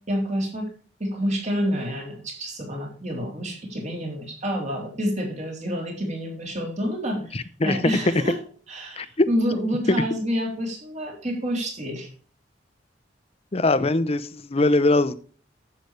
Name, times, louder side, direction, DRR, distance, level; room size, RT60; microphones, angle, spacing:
voice 1, 0.1-0.7 1.0-8.4 8.7-12.1, equal, 40° right, 0 dB, 3.4 m, -28 dB
voice 2, 7.3-7.8 9.0-9.3 13.5-15.1, left 2 dB, 35° left, 13 dB, 0.7 m, -22 dB
10.5 x 8.1 x 3.4 m, 0.40 s
head